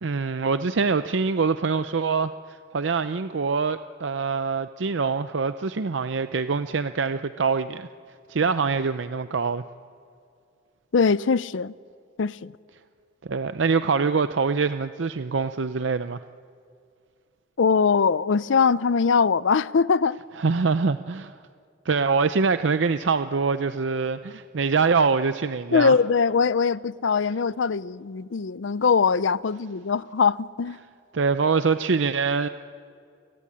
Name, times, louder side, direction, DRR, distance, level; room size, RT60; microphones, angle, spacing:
voice 1, 0.0-7.9 8.3-9.6 13.3-16.2 20.4-21.3 21.8-25.9 31.1-32.5, right 4 dB, 70° right, 0.6 m, -24 dB
voice 2, 10.9-11.7 12.2-12.5 17.6-20.2 25.7-30.8, left 5 dB, 70° left, 0.5 m, -22 dB
30.0 x 16.0 x 10.0 m
head